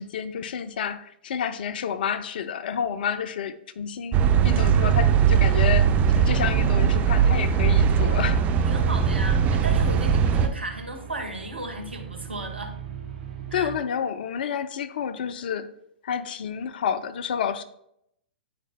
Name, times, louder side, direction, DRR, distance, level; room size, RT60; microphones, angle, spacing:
voice 1, 0.0-4.2 4.4-8.4 13.5-15.7 16.0-17.6, left 8 dB, 60° left, 0.6 m, -29 dB
sound 1, 4.1-10.5, right 7 dB, 25° right, 0.8 m, -20 dB
sound 2, 8.7-13.8, right 8 dB, 60° right, 2.8 m, -40 dB
voice 2, 8.7-12.8 13.5-13.7, right 2 dB, 90° right, 1.7 m, -35 dB
12.5 x 5.1 x 2.2 m
figure-of-eight pair, 110°, 6 cm